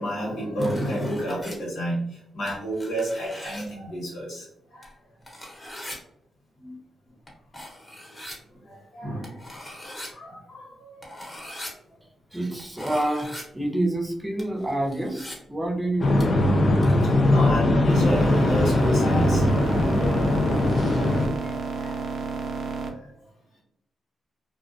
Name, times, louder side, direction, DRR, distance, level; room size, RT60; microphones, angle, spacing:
voice 1, 0.0-2.0 2.3-4.4 4.7-4.9 6.6-6.8 8.9-11.2 17.3-19.4 21.4-22.0, equal, 80° left, -5 dB, 1.3 m, -30 dB
sound 1, 0.6-1.6 2.5-3.7 4.8-4.9 5.2-6.0 7.3-7.4 7.5-8.4 9.2-10.1 11.0-11.7 12.6-13.4 14.4-15.4 16.2-16.5 16.8-17.0, left 1 dB, 25° left, 1.0 m, -40 dB
voice 2, 12.3-16.2, right 1 dB, 10° right, 1 dB, 0.7 m, -27 dB
sound 2, 16.0-21.3, left 1 dB, 55° left, 0.4 m, -20 dB
sound 3, 17.9-22.9, right 4 dB, 65° right, 0.5 m, -31 dB
2.3 x 2.1 x 2.5 m, 0.75 s
cardioid pair, 60°, 0 cm